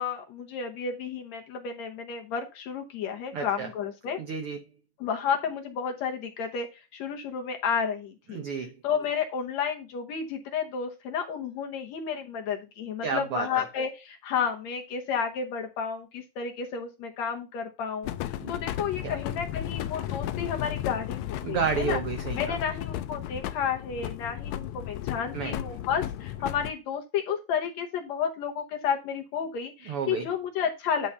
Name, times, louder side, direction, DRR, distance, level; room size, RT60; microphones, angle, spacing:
voice 1, 0.0-4.2 5.0-6.7 6.9-8.4 8.8-22.0 22.3-31.1, left 7 dB, 65° left, 1.9 m, -31 dB
voice 2, 3.3-3.7 4.2-4.6 8.3-8.7 13.0-13.5 18.4-18.5 19.0-19.2 21.4-22.6 25.3-25.6 29.9-30.3, right 6 dB, 90° right, 1.2 m, -31 dB
sound 1, 18.0-26.7, left 12 dB, 85° left, 1.7 m, -34 dB
9.9 x 3.9 x 5.5 m
omnidirectional pair, 3.9 m